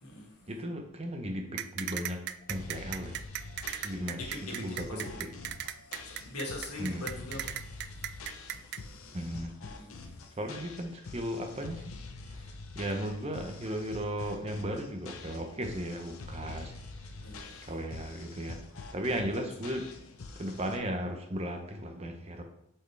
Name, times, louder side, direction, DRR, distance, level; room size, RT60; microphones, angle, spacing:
voice 1, 0.5-2.2 2.5-3.2 3.8-5.3 6.8-7.1 9.1-9.5 10.4-11.8 12.3-12.5 12.7-16.7 17.6-18.6 18.9-19.9 20.4-22.4, equal, 30° right, 4 dB, 0.7 m, -36 dB
sound 1, 1.6-8.8, right 12 dB, 50° right, 0.3 m, -36 dB
sound 2, 2.4-2.9 3.4-3.9 4.4-4.9 5.4-5.9 6.4-6.9, right 1 dB, 40° left, 2.0 m, -60 dB
sound 3, 2.5-20.8, left 3 dB, 70° left, 0.7 m, -46 dB
voice 2, 4.1-5.2 6.0-7.5 9.6-9.9 17.2-17.5 19.0-19.4, left 2 dB, 90° left, -1 dB, 1.7 m, -42 dB
8.1 x 4.5 x 3.3 m, 0.78 s
head